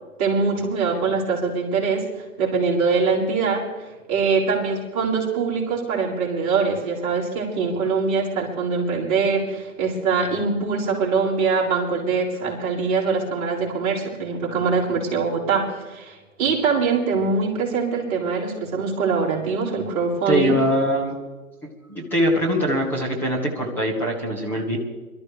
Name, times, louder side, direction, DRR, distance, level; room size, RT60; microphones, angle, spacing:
voice 1, 0.2-2.1 2.4-20.6, right 4 dB, 25° right, -5 dB, 4.1 m, -23 dB
voice 2, 20.3-21.1 21.9-24.8, equal, 5° left, -4 dB, 1.1 m, -22 dB
23.5 x 13.5 x 3.3 m, 1.2 s
hypercardioid pair, 160°, 45 cm